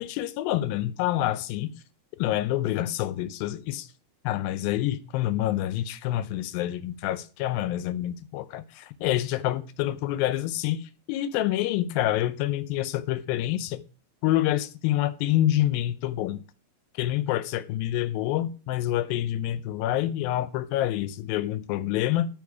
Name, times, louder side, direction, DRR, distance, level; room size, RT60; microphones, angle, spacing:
voice 1, 0.0-1.7 2.2-3.9 4.2-13.8 14.2-16.4 17.0-22.3, left 13 dB, 85° left, 2.4 m, -27 dB
13.0 x 4.8 x 4.8 m
omnidirectional pair, 4.1 m